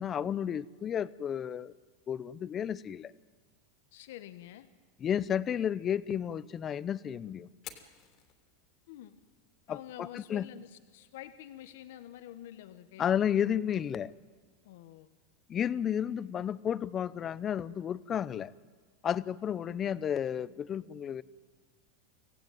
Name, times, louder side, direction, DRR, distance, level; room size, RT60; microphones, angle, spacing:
voice 1, 0.0-1.7 2.1-3.1 5.0-7.5 9.7-10.4 13.0-14.1 15.5-18.5 19.0-21.2, left 9 dB, 30° left, 19 dB, 0.8 m, -32 dB
voice 2, 3.9-4.7 8.9-9.2 9.7-13.2 14.6-15.1, left 12 dB, 75° left, 11 dB, 1.3 m, -48 dB
Fire, 7.5-15.5, left 10 dB, 45° left, 3.0 m, -58 dB
25.0 x 16.0 x 9.2 m, 1.5 s
supercardioid pair, 125°, 0 cm